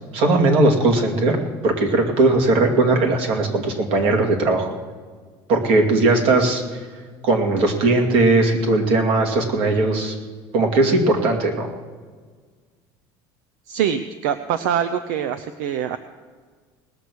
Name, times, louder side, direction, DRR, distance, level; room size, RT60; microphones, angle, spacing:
voice 1, 0.1-4.7 5.5-6.6 7.2-10.1 10.5-11.7, right 2 dB, 65° right, 2 dB, 2.4 m, -18 dB
voice 2, 13.7-16.0, right 9 dB, 85° right, 11 dB, 0.6 m, -24 dB
19.5 x 6.9 x 6.2 m, 1.5 s
supercardioid pair, 115°, 10 cm